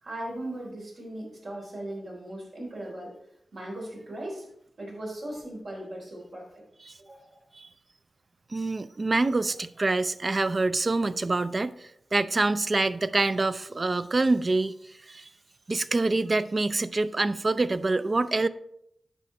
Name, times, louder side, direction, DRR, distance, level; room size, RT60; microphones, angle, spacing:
voice 1, 0.0-3.1 3.5-4.5 4.8-6.6 7.0-7.4, right 1 dB, 75° right, -3 dB, 3.7 m, -38 dB
voice 2, 8.5-15.3 15.7-18.5, right 2 dB, 45° right, 13 dB, 0.5 m, -26 dB
9.1 x 5.7 x 4.2 m, 0.75 s
cardioid pair, 55°, 0 cm